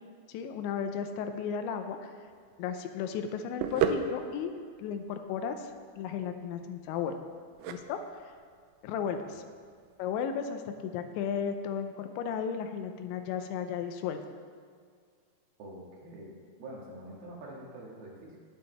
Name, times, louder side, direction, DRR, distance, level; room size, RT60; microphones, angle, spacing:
voice 1, 0.3-2.1 2.6-4.5 4.8-5.7 6.0-7.2 7.7-8.0 8.8-9.4 10.0-14.2, left 7 dB, 85° left, 7 dB, 3.0 m, -34 dB
sound 1, 2.3-10.2, right 7 dB, 85° right, 2.9 m, -37 dB
voice 2, 15.6-16.3 16.6-18.4, right 1 dB, 65° right, -3 dB, 3.5 m, -46 dB
18.0 x 7.3 x 3.4 m, 2.1 s
omnidirectional pair, 5.1 m